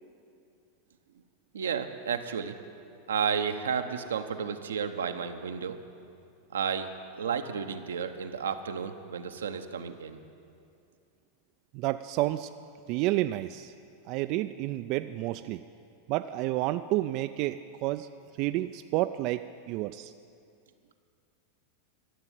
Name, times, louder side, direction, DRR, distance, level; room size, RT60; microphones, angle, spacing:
voice 1, 1.5-2.6 3.1-5.8 6.5-10.2, right 7 dB, 90° right, 7 dB, 0.8 m, -32 dB
voice 2, 11.7-12.5 12.9-13.7 14.1-15.6 16.1-18.1 18.4-19.4 19.7-20.1, right 16 dB, 55° right, 10 dB, 0.3 m, -30 dB
13.5 x 7.0 x 9.3 m, 2.5 s
hypercardioid pair, 105°, 0 cm